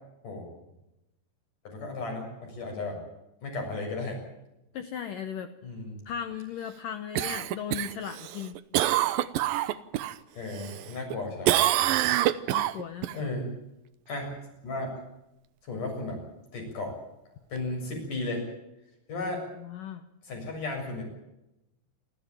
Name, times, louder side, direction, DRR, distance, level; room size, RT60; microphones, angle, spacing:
voice 1, 1.6-3.0 3.4-4.2 5.6-6.0 10.3-11.6 13.1-13.5 14.1-14.3 14.6-15.0 15.6-16.2 16.5-16.9 17.5-18.4 19.1-19.4 20.2-21.1, left 2 dB, 45° left, 2 dB, 8.7 m, -34 dB
voice 2, 4.7-5.5 6.1-8.6 12.5-13.3 19.6-20.0, left 8 dB, 70° left, 9 dB, 2.2 m, -37 dB
Cough, 7.2-10.2 10.6-11.2 11.5-13.1 17.6-17.7, right 13 dB, 75° right, 2.2 m, -26 dB
29.0 x 14.0 x 9.1 m, 0.92 s
omnidirectional pair, 5.0 m